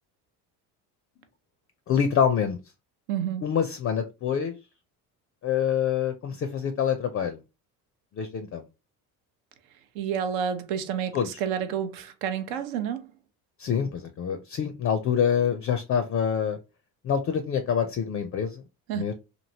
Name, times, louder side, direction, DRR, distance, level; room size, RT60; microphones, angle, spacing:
voice 1, 1.9-2.6 3.4-4.6 5.4-7.4 8.1-8.6 11.1-11.3 13.6-16.6 17.0-18.6 18.9-19.1, left 8 dB, 30° left, 0.4 m, -26 dB
voice 2, 3.1-3.5 9.9-13.1 18.9-19.0, right 8 dB, 75° right, 0.7 m, -29 dB
2.9 x 2.6 x 2.7 m
hypercardioid pair, 70°, 45 cm